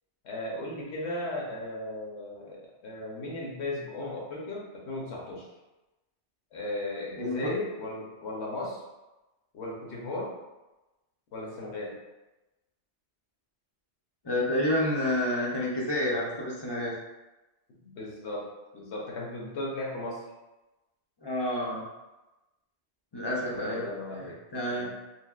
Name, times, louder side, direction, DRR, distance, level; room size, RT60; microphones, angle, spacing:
voice 1, 0.2-5.5 6.5-8.8 9.5-10.3 11.3-12.0 17.8-20.2 23.5-24.4 24.6-24.9, left 2 dB, 75° left, -3 dB, 1.0 m, -36 dB
voice 2, 7.2-7.5 14.2-16.9 21.2-21.8 23.1-23.8 24.2-24.9, left 1 dB, 40° left, -5 dB, 0.3 m, -29 dB
3.2 x 2.7 x 2.3 m, 1.0 s
omnidirectional pair, 1.1 m